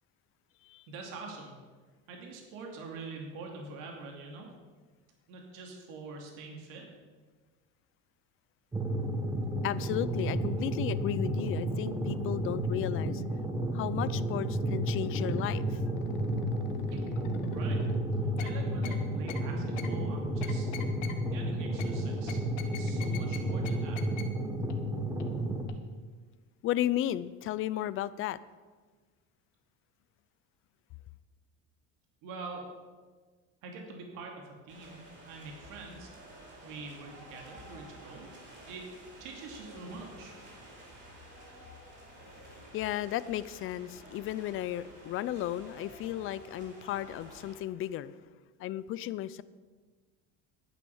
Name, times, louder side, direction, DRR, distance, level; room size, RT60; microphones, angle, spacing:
voice 1, 0.9-1.5 2.1-4.5 5.3-6.8 16.9-17.0 17.5-17.8 18.2-20.7 21.2-24.0 32.2-32.7 33.6-36.1 36.6-38.3 38.6-38.8 39.2-40.3, right 3 dB, 65° right, 1 dB, 2.6 m, -45 dB
sound 1, 8.7-25.6, right 1 dB, 10° right, 1.3 m, -32 dB
voice 2, 9.6-13.2 13.7-15.9 26.6-28.4 42.7-48.1 48.6-49.4, left 13 dB, 40° left, 17 dB, 0.5 m, -34 dB
sound 2, 14.8-15.6 16.0-18.0 18.4-18.5 18.8-19.0 19.3-19.4 19.8-19.9 20.4-21.1 21.8-21.9 22.3-23.4 23.6-23.7 24.0-24.2 24.7-24.8 25.2-25.3 25.7-25.8, left 11 dB, 65° left, 1.4 m, -43 dB
sound 3, 34.7-47.5, right 1 dB, 30° right, 4.5 m, -51 dB
12.0 x 9.3 x 7.1 m, 1.4 s
cardioid pair, 155°, 34 cm